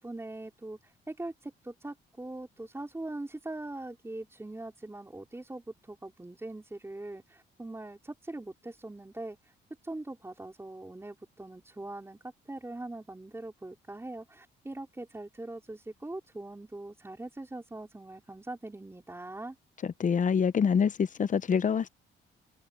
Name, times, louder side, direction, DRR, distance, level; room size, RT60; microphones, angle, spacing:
voice 1, 0.0-9.5 9.8-19.6, right 2 dB, 15° right, 4.1 m, -42 dB
voice 2, 20.0-21.9, left 6 dB, 40° left, 0.8 m, -25 dB
cardioid pair, 90°, 20 cm